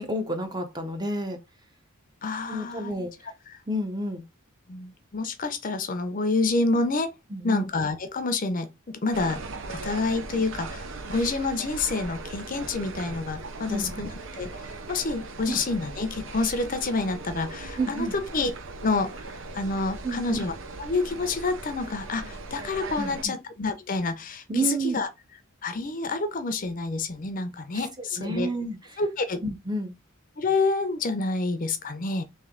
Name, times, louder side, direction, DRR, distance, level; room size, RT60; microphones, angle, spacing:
voice 1, 0.0-1.4 2.5-3.1 3.7-4.2 7.3-7.7 13.7-14.0 15.5-15.6 17.8-18.1 20.0-20.4 23.0-23.3 24.5-25.0 27.7-28.8 29.4-29.9, right 1 dB, 20° right, 0.7 m, -30 dB
voice 2, 2.2-2.9 3.5-3.6 4.7-7.1 7.4-9.4 9.7-14.1 14.4-14.5 14.9-18.5 18.8-19.2 19.5-20.5 20.8-25.1 25.6-28.5 29.0-29.4 30.4-32.2, left 3 dB, 40° left, 0.6 m, -28 dB
sound 1, 9.1-23.3, right 3 dB, 65° right, 0.6 m, -39 dB
3.2 x 3.2 x 3.7 m
head